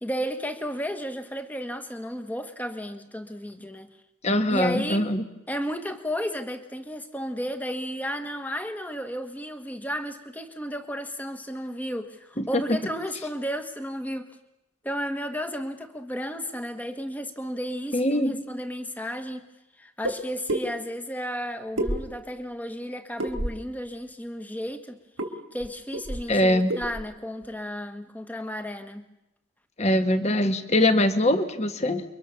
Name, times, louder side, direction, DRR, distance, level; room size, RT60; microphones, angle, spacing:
voice 1, 0.0-3.9 4.5-5.1 5.5-14.3 14.8-19.5 19.8-25.0 25.5-29.0, equal, 10° left, 7 dB, 1.4 m, -33 dB
voice 2, 4.2-5.2 12.4-12.5 17.9-18.4 26.3-26.7 29.8-32.0, left 1 dB, 30° left, 8 dB, 1.6 m, -22 dB
sound 1, 20.0-20.2 20.5-20.6 21.8-22.4 23.2-23.7 25.2-25.3 25.6-25.7 25.9-26.3 26.7-27.0, right 1 dB, 90° right, 2.8 m, -28 dB
30.0 x 23.5 x 7.1 m, 0.93 s
head